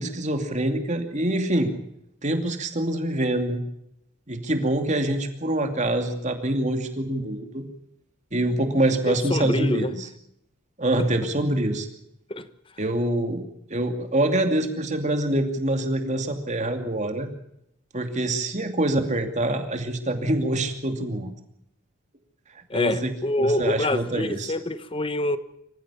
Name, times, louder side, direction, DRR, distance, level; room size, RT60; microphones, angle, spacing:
voice 1, 0.0-1.7 2.2-3.6 4.3-7.6 8.3-10.1 10.8-11.9 12.8-13.4 13.7-17.3 17.9-21.3 22.7-23.1 23.4-24.5, right 1 dB, 35° right, 2.7 m, -25 dB
voice 2, 9.1-9.9 12.3-12.4 22.7-25.4, left 1 dB, 25° left, 1.1 m, -26 dB
26.0 x 15.0 x 7.1 m
head